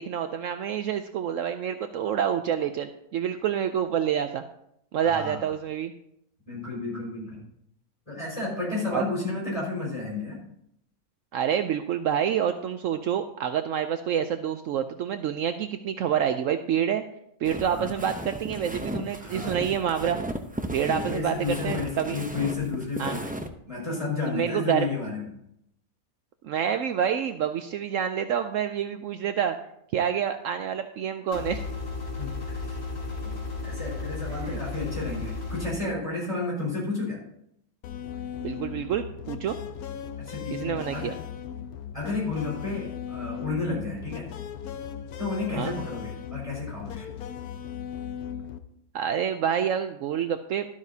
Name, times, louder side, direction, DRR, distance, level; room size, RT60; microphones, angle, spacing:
voice 1, 0.0-4.4 4.9-5.9 8.9-9.0 11.3-17.0 17.4-20.2 20.7-21.3 21.6-22.2 23.0-23.2 24.3-24.9 26.4-29.6 29.9-31.7 34.3-34.6 38.4-39.6 40.5-41.1 45.5-45.7 48.9-50.7, right 8 dB, 70° right, 8 dB, 0.9 m, -27 dB
voice 2, 5.0-5.5 6.5-7.4 8.1-10.4 17.7-17.9 19.2-19.5 20.8-23.3 23.7-25.3 32.2-32.8 33.2-33.4 33.6-37.2 40.2-41.2 41.9-44.3 45.2-47.1, left 3 dB, 20° left, -4 dB, 5.2 m, -32 dB
sound 1, 17.4-23.5, right 1 dB, 15° right, 0.3 m, -35 dB
sound 2, 31.3-35.7, left 3 dB, 45° left, 1.8 m, -34 dB
sound 3, 37.8-48.6, left 9 dB, 85° left, 1.2 m, -37 dB
12.5 x 12.0 x 2.8 m, 0.75 s
omnidirectional pair, 1.5 m